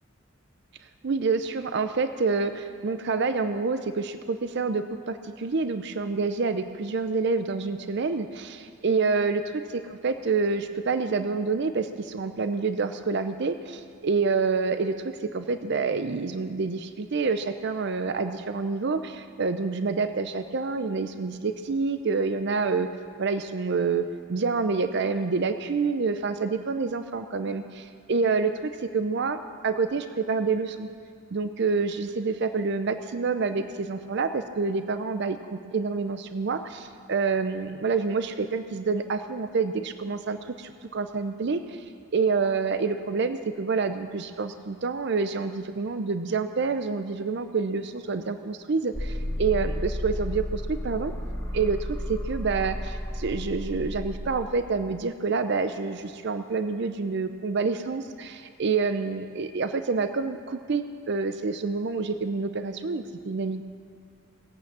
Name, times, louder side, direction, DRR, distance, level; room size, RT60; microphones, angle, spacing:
voice 1, 1.0-9.4 9.7-22.9 23.2-30.9 31.3-41.8 42.1-51.1 51.5-63.6, right 4 dB, 55° right, 9 dB, 0.5 m, -27 dB
sound 1, 48.9-54.4, left 1 dB, 15° left, 1.2 m, -32 dB
19.0 x 8.6 x 7.4 m, 2.2 s
head